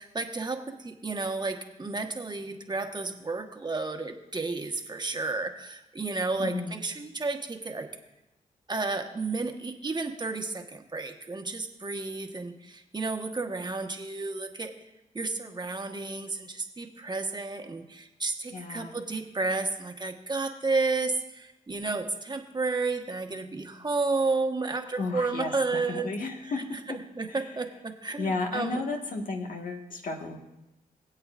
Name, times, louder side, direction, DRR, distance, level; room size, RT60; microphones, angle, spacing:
voice 1, 0.0-7.9 8.7-14.7 15.1-26.1 26.4-28.8, right 3 dB, 30° right, 3 dB, 1.3 m, -32 dB
voice 2, 6.4-6.7 18.5-18.9 25.0-27.0 27.3-27.4 28.2-30.4, left 3 dB, 65° left, 2 dB, 1.5 m, -33 dB
23.0 x 8.0 x 2.5 m, 0.96 s
cardioid pair, 70°, 15 cm